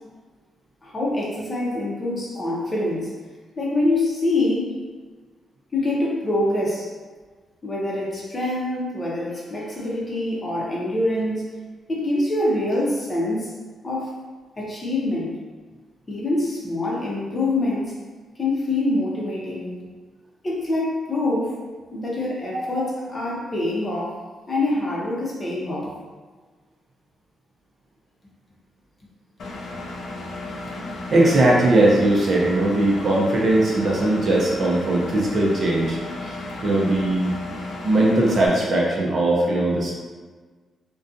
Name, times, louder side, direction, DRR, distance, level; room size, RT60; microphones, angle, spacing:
voice 1, 0.8-3.1 3.6-4.7 5.7-6.9 7.6-11.4 11.9-13.5 13.8-14.1 14.6-15.4 16.1-17.9 18.4-19.7 20.4-21.6 21.9-25.9, left 2 dB, 25° left, -4 dB, 0.6 m, -25 dB
Engine, 29.4-38.5, left 2 dB, 65° left, 0.4 m, -34 dB
voice 2, 31.1-36.4 36.6-37.3 37.8-39.9, right 1 dB, 50° right, -4 dB, 0.6 m, -19 dB
2.4 x 2.2 x 2.6 m, 1.4 s
cardioid pair, 115°, 0 cm